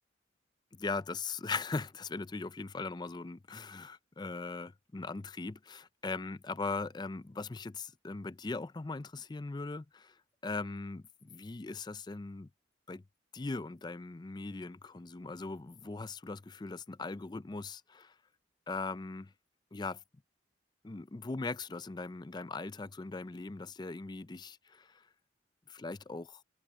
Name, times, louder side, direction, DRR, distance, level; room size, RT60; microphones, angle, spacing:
voice 1, 0.7-10.2 10.4-12.5 12.9-13.0 13.3-18.2 18.7-19.3 19.7-20.0 20.8-25.1 25.7-26.4, left 3 dB, 25° left, 0.4 m, -40 dB
head